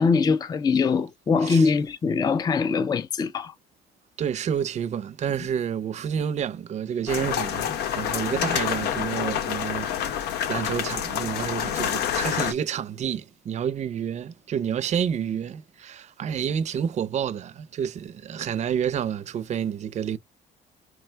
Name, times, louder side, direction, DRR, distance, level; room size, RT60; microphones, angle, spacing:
voice 1, 0.0-3.5 8.4-8.6, left 5 dB, 25° left, 0.4 m, -23 dB
voice 2, 4.2-20.2, right 8 dB, 45° right, 0.5 m, -29 dB
sound 1, 7.1-12.5, left 9 dB, 75° left, 0.7 m, -27 dB
4.7 x 2.2 x 4.4 m
cardioid pair, 110°, 17 cm